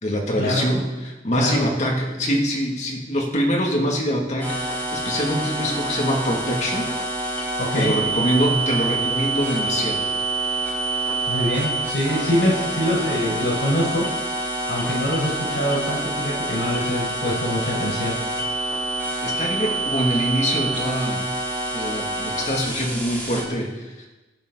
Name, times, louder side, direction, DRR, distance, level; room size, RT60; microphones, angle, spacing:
voice 1, 0.0-6.9 7.7-10.0 19.2-21.3 21.7-24.1, equal, 40° left, 0 dB, 2.6 m, -24 dB
sound 1, 4.4-23.4, right 2 dB, 10° left, 3.4 m, -27 dB
voice 2, 7.6-7.9 11.3-14.0 14.7-18.1, equal, 80° left, -6 dB, 5.1 m, -24 dB
23.0 x 10.0 x 4.1 m, 1.1 s
head